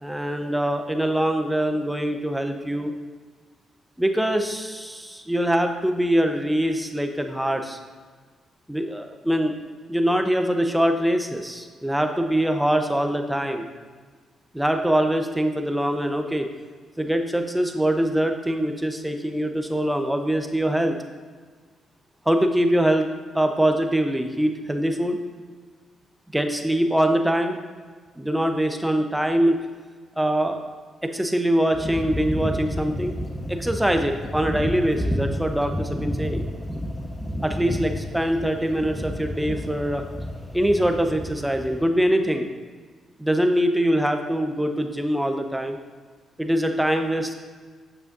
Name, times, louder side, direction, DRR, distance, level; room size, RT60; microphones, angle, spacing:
voice 1, 0.0-2.9 4.0-7.8 8.7-9.5 9.9-13.7 14.5-16.5 17.0-21.0 22.3-23.1 23.3-25.2 26.3-27.6 28.2-29.6 30.2-30.6 31.0-33.2 33.5-36.5 37.4-40.0 40.5-42.5 43.2-45.8 46.4-47.3, right 1 dB, 5° right, 5 dB, 0.8 m, -23 dB
sound 1, 31.7-41.9, equal, 10° left, 1.1 m, -31 dB
8.6 x 6.6 x 2.6 m, 1.5 s
hypercardioid pair, 50°, 0 cm